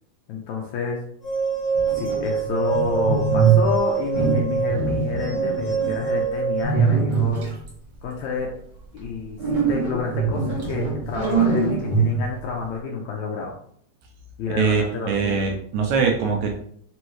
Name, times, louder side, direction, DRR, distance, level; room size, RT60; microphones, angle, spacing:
voice 1, 0.3-1.0 1.9-7.4 8.0-8.5 8.9-13.5 14.4-15.5, left 4 dB, 80° left, 0 dB, 1.7 m, -29 dB
sound 1, 1.2-6.6, right 6 dB, 45° left, 1.8 m, -25 dB
sound 2, 1.8-3.8 4.1-6.1 6.6-7.7 9.4-12.4, right 5 dB, 50° right, 1.6 m, -23 dB
voice 2, 14.6-16.5, right 5 dB, 80° right, 1 dB, 1.8 m, -22 dB
5.5 x 2.6 x 3.0 m, 0.64 s
omnidirectional pair, 3.7 m